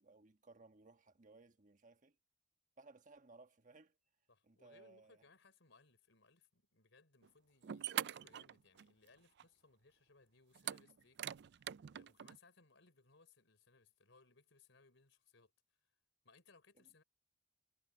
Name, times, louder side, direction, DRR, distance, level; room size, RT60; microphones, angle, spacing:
voice 1, 0.0-2.2 2.8-4.0 4.4-5.2, right 3 dB, 40° right, 1.5 m, -62 dB
voice 2, 4.3-15.5 16.2-17.0, left 4 dB, 70° left, 4.6 m, -68 dB
sound 1, 7.2-7.3 7.6-9.1 9.4-9.5 10.6-12.4, right 11 dB, 60° right, 0.4 m, -44 dB
head